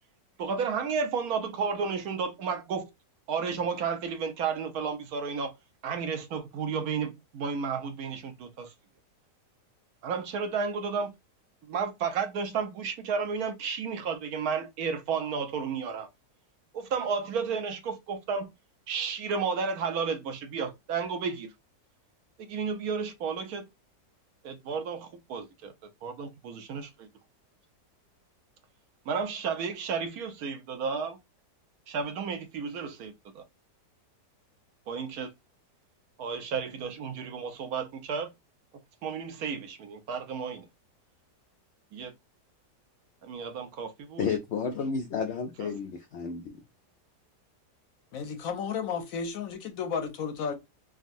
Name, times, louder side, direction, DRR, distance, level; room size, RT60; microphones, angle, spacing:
voice 1, 0.4-2.9 3.3-5.5 5.8-8.7 10.0-11.1 11.7-16.1 16.7-18.5 18.9-21.5 22.5-23.6 24.4-25.7 26.0-27.1 29.1-31.2 31.9-33.4 34.9-35.3 36.2-38.3 39.0-40.7 41.9-42.1 43.2-44.3, right 5 dB, 70° right, 1.0 m, -32 dB
voice 2, 44.2-46.4, left 6 dB, 85° left, 0.6 m, -31 dB
voice 3, 48.1-50.5, left 6 dB, 65° left, 0.9 m, -33 dB
3.5 x 2.3 x 2.5 m
omnidirectional pair, 1.8 m